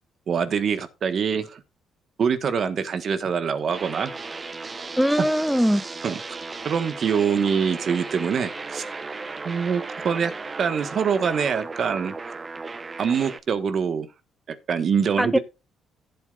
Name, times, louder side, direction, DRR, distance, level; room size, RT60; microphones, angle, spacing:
voice 1, 0.3-1.6 2.2-4.1 5.2-5.3 6.0-6.2 6.6-8.8 9.4-10.3 10.6-12.1 13.0-14.1 14.7-15.4, right 6 dB, 55° right, 1.3 m, -24 dB
sound 1, 3.7-13.4, right 3 dB, 30° right, 0.9 m, -35 dB
voice 2, 5.0-5.8 15.2-15.4, equal, ahead, 0.5 m, -21 dB
16.0 x 8.0 x 2.4 m
cardioid pair, 90°, 0 cm